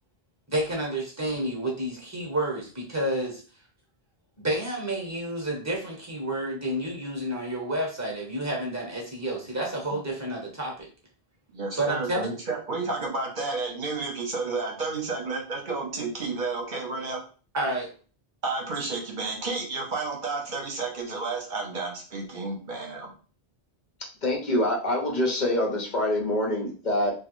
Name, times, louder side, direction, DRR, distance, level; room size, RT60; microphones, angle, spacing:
voice 1, 0.5-3.4 4.4-10.9 11.8-12.3 17.5-17.9, right 1 dB, 15° right, -1 dB, 1.0 m, -30 dB
voice 2, 11.5-17.2 18.4-23.1, right 3 dB, 50° right, 0 dB, 1.0 m, -31 dB
voice 3, 24.2-27.1, left 1 dB, 50° left, 0 dB, 1.0 m, -25 dB
3.1 x 2.4 x 3.1 m, 0.38 s
omnidirectional pair, 1.0 m